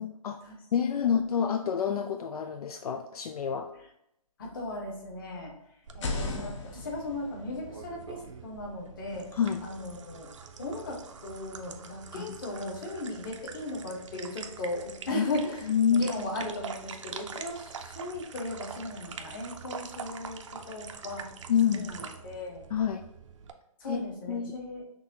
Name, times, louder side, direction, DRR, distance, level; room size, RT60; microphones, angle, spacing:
voice 1, 0.0-0.4 0.7-3.7 9.3-9.6 12.1-12.4 15.1-15.2 15.7-16.2 21.5-21.9 22.7-23.0 23.9-24.0 24.3-24.6, left 8 dB, 75° left, 7 dB, 0.4 m, -28 dB
voice 2, 4.4-5.5 5.9-9.3 9.6-10.3 10.6-15.6 15.9-21.3 21.8-22.6 23.8-24.8, left 2 dB, 35° left, -1 dB, 1.2 m, -37 dB
sound 1, 5.8-9.7, left 3 dB, 50° left, 0.8 m, -39 dB
sound 2, 5.9-23.5, right 6 dB, 55° right, 0.5 m, -44 dB
5.9 x 2.7 x 2.9 m, 0.76 s
hypercardioid pair, 160°, 19 cm